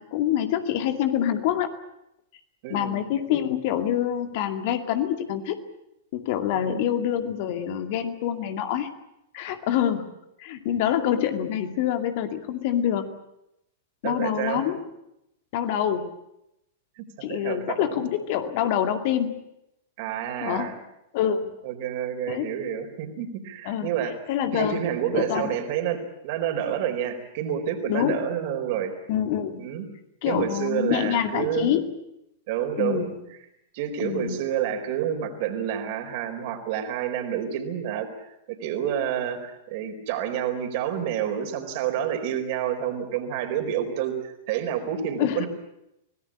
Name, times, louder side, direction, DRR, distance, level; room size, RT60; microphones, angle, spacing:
voice 1, 0.0-1.7 2.7-5.6 6.1-8.9 9.3-10.1 10.4-13.1 14.0-14.8 15.5-16.1 17.2-19.4 20.4-20.8 21.1-21.6 22.3-22.5 23.7-23.9 24.3-24.8 25.1-25.5 27.9-28.2 29.1-29.7 30.2-31.9 32.8-33.2 34.0-34.4 45.2-45.5, left 10 dB, 50° left, 7 dB, 2.4 m, -26 dB
voice 2, 2.6-3.0 6.5-6.9 14.0-14.6 17.0-17.8 20.0-20.7 21.6-24.1 24.5-28.9 29.6-29.8 30.3-31.7 32.5-33.1 33.7-45.5, right 9 dB, 50° right, 5 dB, 4.4 m, -29 dB
25.5 x 18.0 x 8.8 m, 0.85 s
figure-of-eight pair, 100°, 0 cm